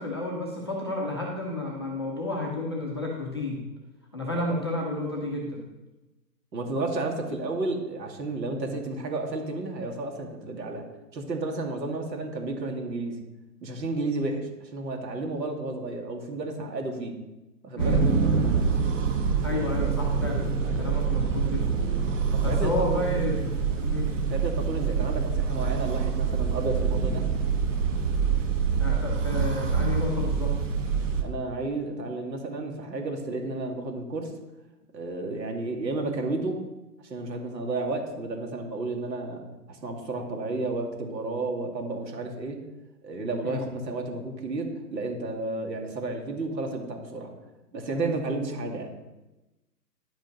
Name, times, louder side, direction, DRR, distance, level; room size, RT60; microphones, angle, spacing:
voice 1, 0.0-3.6 4.1-5.6 17.8-18.1 19.4-20.4 20.8-21.8 22.4-23.4 23.8-24.2 28.8-30.5 43.4-43.7 47.9-48.2, left 2 dB, 15° left, -4 dB, 0.6 m, -31 dB
voice 2, 6.5-10.8 11.1-13.2 13.6-17.1 17.6-18.0 22.3-23.1 24.3-27.2 31.2-34.3 34.9-36.6 37.0-42.6 43.0-47.3 47.7-48.9, right 2 dB, 80° right, 2 dB, 2.4 m, -32 dB
sound 1, 17.8-31.2, right 6 dB, 50° right, 1.3 m, -26 dB
10.5 x 5.3 x 5.2 m, 1.0 s
hypercardioid pair, 160°, 50 cm